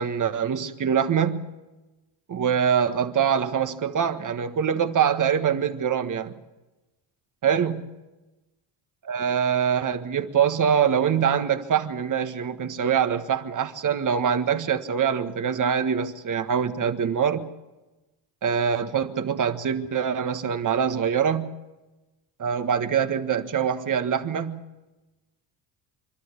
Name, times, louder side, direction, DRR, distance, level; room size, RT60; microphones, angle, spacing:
voice 1, 0.0-1.5 2.3-6.3 7.4-7.9 9.0-17.5 18.4-21.5 22.4-24.6, right 7 dB, 40° right, 1.6 m, -24 dB
26.0 x 12.5 x 9.8 m
cardioid pair, 100°, 47 cm